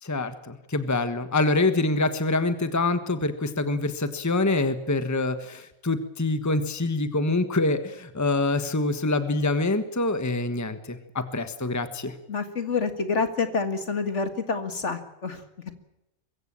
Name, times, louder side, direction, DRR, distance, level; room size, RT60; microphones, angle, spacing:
voice 1, 0.0-12.1, left 2 dB, 15° left, 11 dB, 1.3 m, -25 dB
voice 2, 12.3-15.7, left 4 dB, 55° left, 9 dB, 2.3 m, -28 dB
22.5 x 16.0 x 8.8 m, 0.92 s
omnidirectional pair, 1.4 m